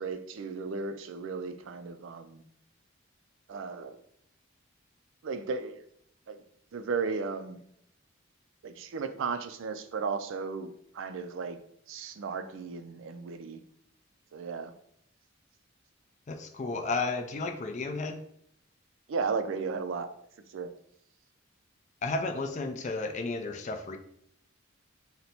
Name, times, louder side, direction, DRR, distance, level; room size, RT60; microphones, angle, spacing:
voice 1, 0.0-2.4 3.5-4.0 5.2-5.8 6.3-6.4 6.7-7.6 8.6-11.6 11.9-13.6 14.3-14.7 19.1-20.1 20.5-20.7, right 5 dB, 70° right, 9 dB, 0.4 m, -35 dB
voice 2, 16.3-18.2 22.0-24.0, left 3 dB, 35° left, 6 dB, 0.4 m, -33 dB
4.2 x 2.2 x 4.1 m, 0.70 s
head